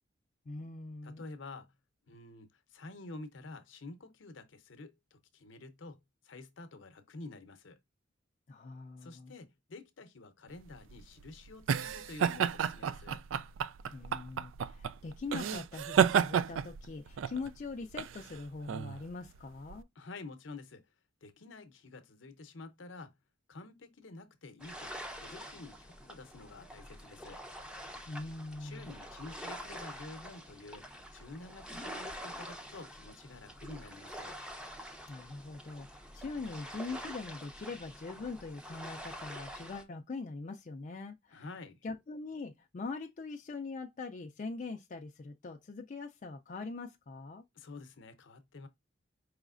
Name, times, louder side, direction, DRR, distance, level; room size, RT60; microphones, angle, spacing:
voice 1, 0.5-1.3 8.5-9.3 13.9-19.9 28.1-28.9 35.1-41.5 41.8-47.4, left 3 dB, 40° left, 0.4 m, -42 dB
voice 2, 1.0-1.7 2.1-6.0 6.2-7.8 9.0-13.2 20.0-20.8 21.2-23.1 23.5-24.9 25.2-27.4 28.6-30.9 31.1-34.4 41.3-41.8 47.5-48.7, left 3 dB, 70° left, 0.7 m, -49 dB
sound 1, 10.6-19.8, right 8 dB, 80° right, 0.3 m, -32 dB
sound 2, 24.6-39.8, equal, 5° right, 0.6 m, -46 dB
4.9 x 3.1 x 2.4 m
head